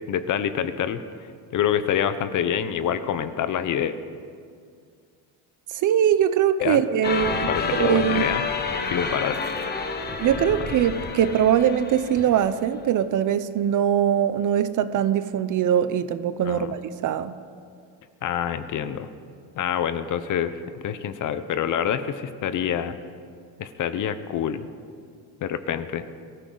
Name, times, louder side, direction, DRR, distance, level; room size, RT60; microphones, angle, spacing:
voice 1, 0.1-1.0 1.5-3.9 6.6-6.8 7.3-9.5 16.4-16.8 18.2-19.1 19.5-23.0 23.6-24.7 25.4-26.0, left 9 dB, 45° left, 12 dB, 0.8 m, -26 dB
voice 2, 5.7-7.5 7.8-8.3 10.2-17.3, right 9 dB, 45° right, 13 dB, 0.7 m, -22 dB
sound 1, 7.0-12.8, left 4 dB, 25° left, 1.2 m, -29 dB
22.0 x 14.5 x 3.9 m, 2.2 s
cardioid pair, 135°, 43 cm